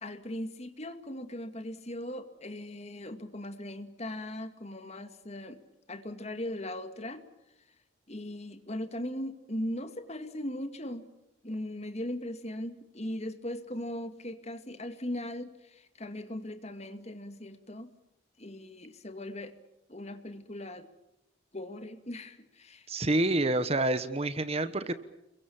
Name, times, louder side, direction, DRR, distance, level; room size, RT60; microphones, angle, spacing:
voice 1, 0.0-5.6 5.9-7.2 7.6-7.8 8.1-11.1 11.4-17.9 18.4-19.6 19.9-20.9 21.5-22.9, left 1 dB, 35° left, 9 dB, 2.2 m, -39 dB
voice 2, 22.9-24.9, right 2 dB, 30° right, 13 dB, 1.1 m, -28 dB
29.5 x 23.0 x 7.2 m, 0.87 s
head